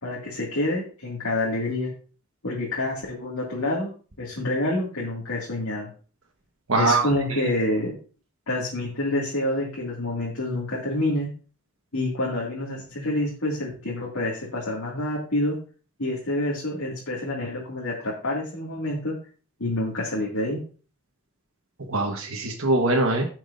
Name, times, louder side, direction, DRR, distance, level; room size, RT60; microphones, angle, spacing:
voice 1, 0.0-1.9 2.4-3.9 4.2-5.9 6.8-8.0 8.5-11.3 11.9-15.6 16.0-19.1 19.6-20.6, left 1 dB, 80° left, -5 dB, 2.3 m, -27 dB
voice 2, 6.7-7.4 21.9-23.3, right 2 dB, 70° right, 1 dB, 1.3 m, -23 dB
15.5 x 6.0 x 2.6 m, 0.39 s
head